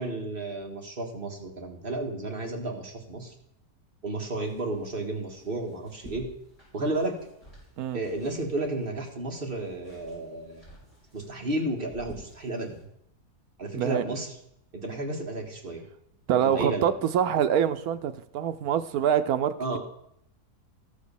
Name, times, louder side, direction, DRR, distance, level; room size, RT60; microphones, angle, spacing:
voice 1, 0.0-3.3 4.0-6.3 6.7-7.2 7.9-10.7 11.1-12.8 13.6-14.3 14.7-15.8 16.4-16.9 19.6-19.8, right 2 dB, 35° right, 1 dB, 1.8 m, -32 dB
sound 1, 4.2-8.9 9.2-12.8, equal, 20° left, 5.4 m, -52 dB
voice 2, 13.7-14.0 16.3-19.8, right 9 dB, 75° right, 11 dB, 1.1 m, -25 dB
14.0 x 5.2 x 6.8 m, 0.75 s
omnidirectional pair, 1.6 m